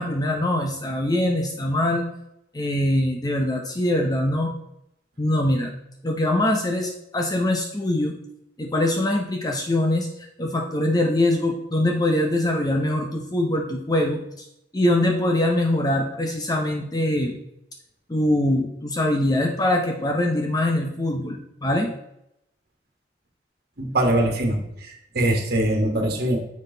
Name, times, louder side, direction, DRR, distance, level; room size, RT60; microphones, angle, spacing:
voice 1, 0.0-2.1 2.5-4.5 5.2-5.7 6.0-8.2 8.6-10.1 10.4-14.5 14.7-17.4 18.1-21.9, left 1 dB, 20° left, 2 dB, 0.8 m, -23 dB
voice 2, 23.8-26.4, right 1 dB, 60° right, 1 dB, 1.5 m, -22 dB
7.5 x 6.2 x 3.9 m, 0.80 s
head